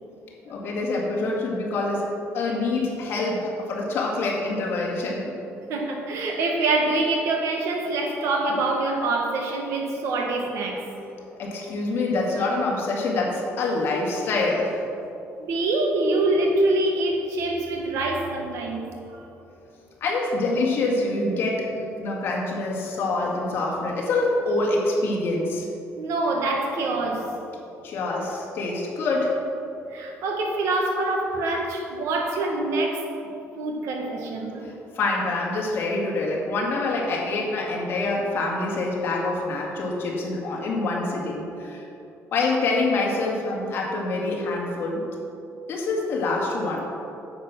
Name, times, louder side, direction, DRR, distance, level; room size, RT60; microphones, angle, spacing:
voice 1, 0.5-5.3 11.4-14.8 20.0-25.7 27.8-29.4 34.6-41.9 42.3-45.1 45.7-46.8, left 2 dB, 50° left, -2 dB, 2.0 m, -26 dB
voice 2, 5.7-10.9 15.4-18.8 25.9-27.3 29.9-33.0 33.5-34.7, right 2 dB, 70° right, 2 dB, 1.5 m, -25 dB
9.2 x 7.4 x 6.0 m, 2.8 s
cardioid pair, 175°, 5 cm